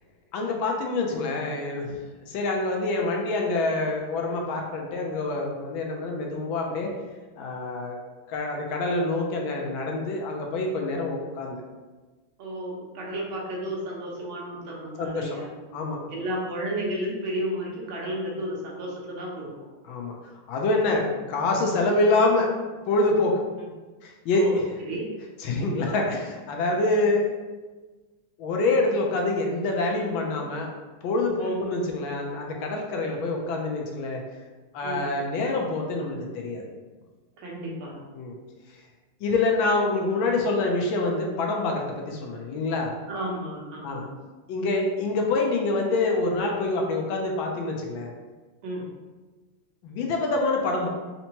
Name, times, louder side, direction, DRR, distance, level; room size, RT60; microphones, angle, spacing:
voice 1, 0.3-1.9 2.2-6.9 7.4-8.0 8.3-11.6 15.0-15.4 15.7-16.0 19.8-22.5 22.9-23.4 24.0-24.6 25.4-27.4 28.4-30.7 31.0-34.2 34.7-36.7 38.1-38.4 39.2-42.9 43.8-44.1 44.5-48.1 49.8-50.9, left 2 dB, 80° left, 1 dB, 1.4 m, -26 dB
voice 2, 12.4-15.5 16.1-19.5 20.8-21.0 23.6-23.7 24.3-24.6 24.9-25.1 31.4-31.5 34.8-35.0 37.4-38.0 43.1-44.1 48.6-48.9, right 1 dB, 80° right, -3 dB, 1.7 m, -32 dB
4.3 x 2.8 x 2.8 m, 1.3 s
omnidirectional pair, 2.2 m